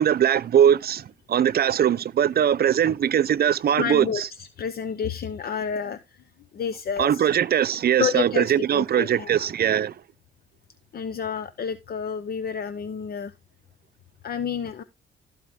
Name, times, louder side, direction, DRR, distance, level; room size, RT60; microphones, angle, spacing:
voice 1, 0.0-4.3 7.0-9.9, right 9 dB, 50° right, 0.7 m, -21 dB
voice 2, 3.8-6.2 6.5-7.3 8.0-9.5 10.9-13.3 14.2-14.8, left 7 dB, 50° left, 0.8 m, -30 dB
15.0 x 4.9 x 3.6 m
cardioid pair, 90°, 20 cm